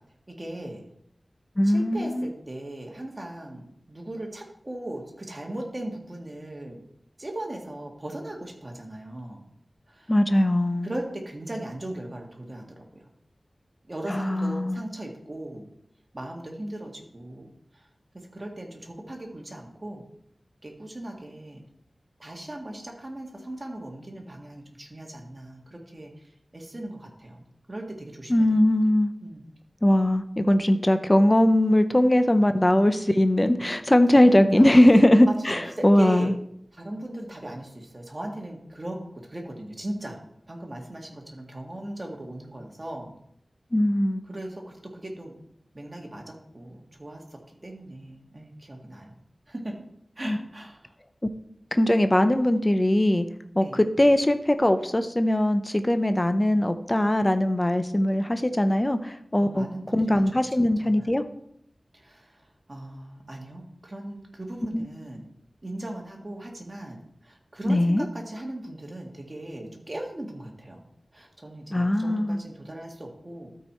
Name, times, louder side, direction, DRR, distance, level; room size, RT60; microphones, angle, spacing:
voice 1, 0.3-0.8 1.6-6.8 7.2-9.4 9.9-10.1 10.8-13.0 13.9-15.7 16.1-17.9 18.1-20.0 20.6-21.6 22.2-26.1 26.5-27.4 27.7-28.5 29.2-29.5 34.1-34.7 35.3-36.3 36.7-40.2 40.5-43.1 44.3-45.3 45.7-49.1 49.5-49.8 50.2-50.8 53.6-53.8 59.3-61.1 61.9-62.4 62.7-65.2 65.6-70.8 71.1-73.5, right 1 dB, 30° right, 0 dB, 1.9 m, -38 dB
voice 2, 1.6-2.3 10.1-10.9 14.1-14.8 28.3-29.1 29.8-36.3 43.7-44.2 50.2-50.4 51.7-53.3 53.6-59.7 59.9-61.2 64.7-64.9 67.7-68.0 71.7-72.4, left 1 dB, 20° left, 9 dB, 0.6 m, -20 dB
13.0 x 4.7 x 4.3 m, 0.72 s
wide cardioid pair, 80°, 0 cm